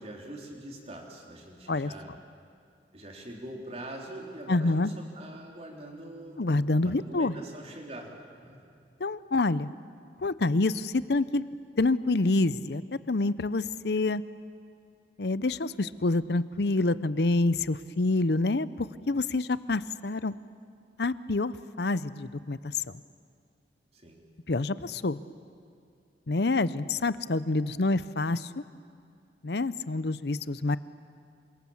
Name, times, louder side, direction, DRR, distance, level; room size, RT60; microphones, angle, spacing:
voice 1, 0.0-2.1 2.9-6.5 6.8-8.1 8.4-8.6 19.0-19.2 23.9-24.2, right 1 dB, 35° right, 0 dB, 3.8 m, -43 dB
voice 2, 4.5-4.9 6.4-7.4 9.0-9.7 10.2-11.5 11.8-12.8 13.1-14.2 15.2-20.3 21.0-23.0 24.5-25.2 26.3-28.5 29.4-30.8, left 2 dB, 60° left, 16 dB, 0.7 m, -27 dB
28.0 x 26.5 x 7.3 m, 2.4 s
head